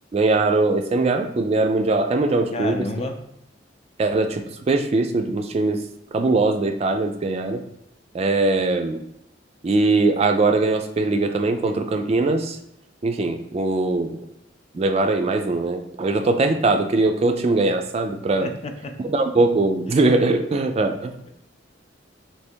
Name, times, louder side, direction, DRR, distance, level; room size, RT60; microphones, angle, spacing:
voice 1, 0.1-2.8 4.0-5.8 6.1-7.6 8.1-9.0 9.6-12.6 13.0-14.2 14.7-18.5 19.1-21.3, right 3 dB, 35° right, 5 dB, 0.4 m, -21 dB
voice 2, 2.5-3.1 18.4-18.9 19.9-20.0, left 2 dB, 35° left, 5 dB, 0.5 m, -30 dB
3.3 x 2.9 x 4.4 m, 0.77 s
head